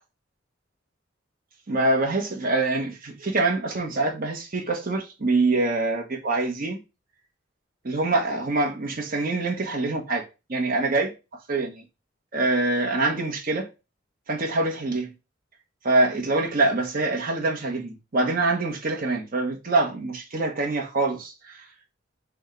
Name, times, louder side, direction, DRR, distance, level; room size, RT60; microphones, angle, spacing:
voice 1, 1.7-6.8 7.8-10.2 10.5-11.1 11.5-11.8 12.3-13.7 14.3-15.1 15.8-21.6, right 2 dB, 50° right, 1.2 m, -25 dB
6.2 x 2.4 x 3.2 m
head